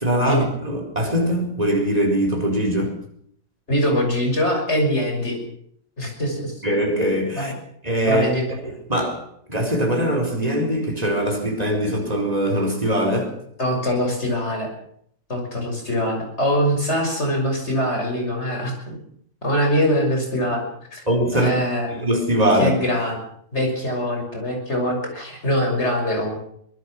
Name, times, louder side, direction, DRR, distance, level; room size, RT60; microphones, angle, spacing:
voice 1, 0.0-3.0 6.6-7.5 7.8-8.2 8.6-9.2 9.5-13.3 21.1-21.5 21.9-22.8, equal, 25° right, 2 dB, 4.8 m, -22 dB
voice 2, 3.7-5.4 6.0-6.6 7.3-7.5 8.0-8.5 13.6-14.7 15.3-19.0 19.4-20.6 20.9-21.0 21.3-21.9 22.6-23.2 23.5-26.4, equal, 45° left, 2 dB, 6.5 m, -23 dB
24.0 x 19.5 x 6.3 m, 0.67 s
omnidirectional pair, 1.7 m